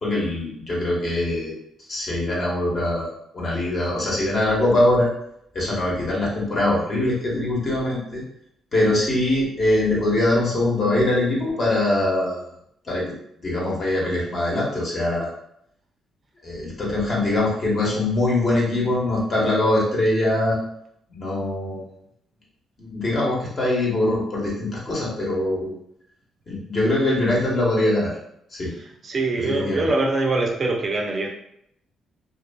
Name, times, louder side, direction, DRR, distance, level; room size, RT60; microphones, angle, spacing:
voice 1, 0.0-1.6 1.9-5.1 5.5-8.2 8.7-12.4 12.8-13.0 13.4-15.3 16.4-20.6 21.1-21.8 22.8-25.7 26.5-28.2 28.5-28.7 29.4-29.9, left 1 dB, 40° left, -5 dB, 1.1 m, -22 dB
voice 2, 29.0-31.3, right 2 dB, 40° right, 1 dB, 0.4 m, -23 dB
2.5 x 2.4 x 2.2 m, 0.73 s
cardioid pair, 90°, 0 cm